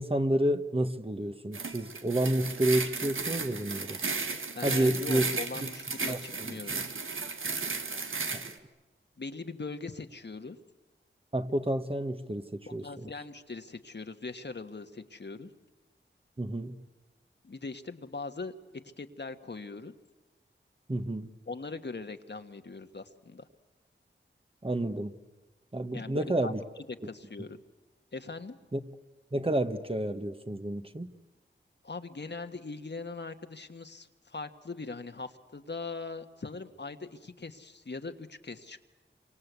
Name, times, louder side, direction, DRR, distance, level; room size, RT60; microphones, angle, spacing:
voice 1, 0.0-4.0 4.6-5.2 6.1-6.5 8.3-8.4 11.3-13.1 16.4-16.7 20.9-21.3 24.6-25.1 25.7-26.6 28.7-28.8 29.3-31.1, right 1 dB, 30° right, 8 dB, 1.5 m, -30 dB
sound 1, 1.5-8.5, right 4 dB, 90° right, 1.6 m, -34 dB
voice 2, 4.5-7.1 9.2-10.6 12.8-15.5 17.4-18.5 19.0-19.9 21.5-23.5 25.9-26.5 27.0-27.6 28.1-28.6 31.8-38.8, left 3 dB, 60° left, 7 dB, 1.6 m, -41 dB
28.5 x 25.0 x 8.3 m, 1.1 s
wide cardioid pair, 65°, 20 cm